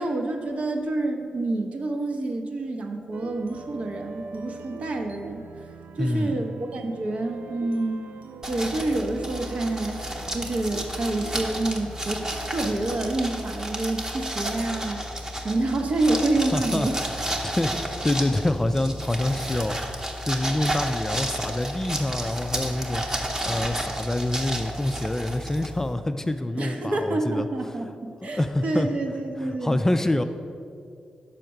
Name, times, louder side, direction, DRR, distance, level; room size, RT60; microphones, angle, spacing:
voice 1, 0.0-5.4 6.0-8.2 8.5-10.1 10.3-15.0 15.4-17.0 26.6-29.8, right 2 dB, 55° right, 3 dB, 0.8 m, -28 dB
sound 1, 3.1-13.1, right 5 dB, 90° right, 0.3 m, -42 dB
voice 2, 6.0-6.4 16.5-16.9 17.4-19.8 20.2-23.0 23.5-27.5 28.2-28.9 29.4-30.2, left 1 dB, 20° left, 8 dB, 0.3 m, -26 dB
sound 2, 8.4-25.9, right 1 dB, 25° right, 0.9 m, -32 dB
5.7 x 4.5 x 6.3 m, 2.3 s
cardioid pair, 75°, 3 cm